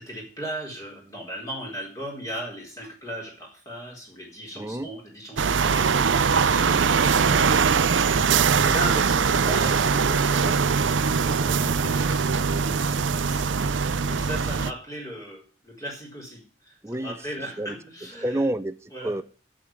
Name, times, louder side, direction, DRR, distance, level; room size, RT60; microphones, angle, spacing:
voice 1, 0.0-7.6 7.9-18.4 18.9-19.2, right 1 dB, 15° left, -1 dB, 4.2 m, -37 dB
voice 2, 4.6-4.9 16.8-17.3 17.6-17.8 18.2-19.2, right 1 dB, 15° right, 11 dB, 0.5 m, -29 dB
sound 1, 5.4-14.7, right 5 dB, 85° right, 0.6 m, -22 dB
8.3 x 7.7 x 8.8 m, 0.40 s
head